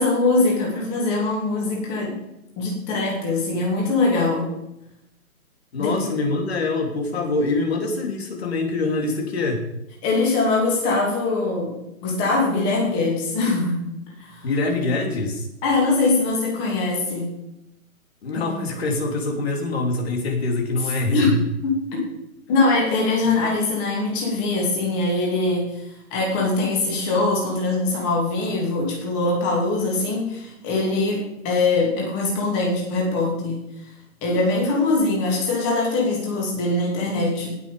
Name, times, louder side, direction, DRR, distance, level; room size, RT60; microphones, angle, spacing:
voice 1, 0.0-2.2 2.6-4.5 5.8-6.1 10.0-13.9 14.2-14.5 15.6-17.4 21.1-21.4 21.6-22.0 22.5-25.8 26.1-33.6 34.2-37.6, left 3 dB, 15° left, -2 dB, 2.7 m, -22 dB
voice 2, 5.7-9.6 14.4-15.5 18.2-21.4, left 2 dB, 45° left, 2 dB, 2.9 m, -24 dB
18.5 x 6.3 x 5.1 m, 0.85 s
hypercardioid pair, 165°, 42 cm